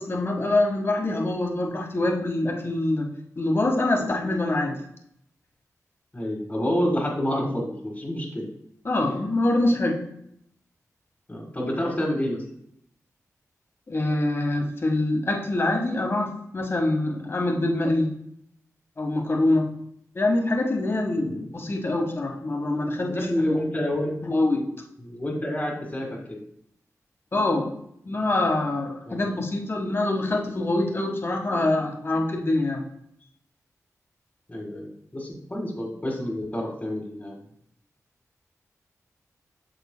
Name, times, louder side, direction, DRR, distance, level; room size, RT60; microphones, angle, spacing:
voice 1, 0.0-3.1 3.3-4.8 8.8-10.0 13.9-18.1 19.0-19.7 20.1-23.6 24.2-24.6 27.3-27.7 28.1-32.8, left 2 dB, 40° left, 1 dB, 1.5 m, -25 dB
voice 2, 6.1-8.5 9.0-9.1 11.3-12.4 21.2-21.4 23.1-24.2 25.0-26.4 29.1-29.3 34.5-37.4, equal, 20° left, -3 dB, 1.8 m, -28 dB
8.6 x 6.5 x 2.2 m, 0.72 s
cardioid pair, 60°, 6 cm